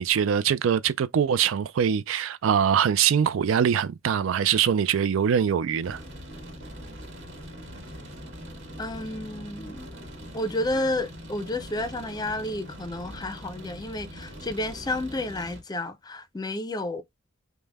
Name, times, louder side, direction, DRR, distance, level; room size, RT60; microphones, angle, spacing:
voice 1, 0.0-6.0, right 8 dB, 80° right, 0.4 m, -23 dB
sound 1, 5.8-15.6, equal, 65° right, 1.6 m, -42 dB
voice 2, 8.8-9.9 10.3-17.0, left 1 dB, 20° left, 0.5 m, -31 dB
5.2 x 2.1 x 3.4 m
head